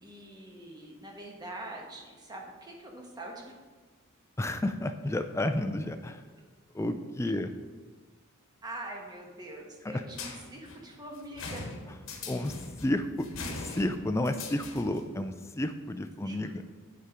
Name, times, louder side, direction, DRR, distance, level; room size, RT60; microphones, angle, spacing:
voice 1, 0.0-3.5 7.3-7.4 8.6-11.8 16.2-16.6, right 1 dB, 20° right, 0 dB, 1.1 m, -44 dB
voice 2, 4.4-6.2 6.7-7.5 9.8-10.0 12.3-13.3 13.6-16.6, left 1 dB, 15° left, 8 dB, 0.3 m, -31 dB
sound 1, 10.1-15.1, left 3 dB, 65° left, 1.1 m, -41 dB
8.2 x 5.1 x 4.8 m, 1.3 s
head